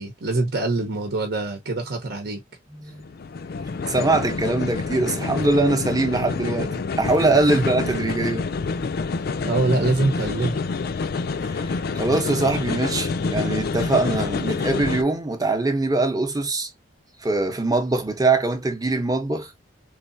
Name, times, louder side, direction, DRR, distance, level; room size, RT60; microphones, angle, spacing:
voice 1, 0.0-2.4 9.4-10.6, right 2 dB, 60° right, 1.0 m, -24 dB
voice 2, 2.7-3.0 3.8-8.5 11.4-16.7 17.2-19.5, right 2 dB, 20° right, 0.8 m, -22 dB
sound 1, 2.9-15.0, left 4 dB, 55° left, 0.4 m, -27 dB
3.8 x 3.3 x 2.6 m
head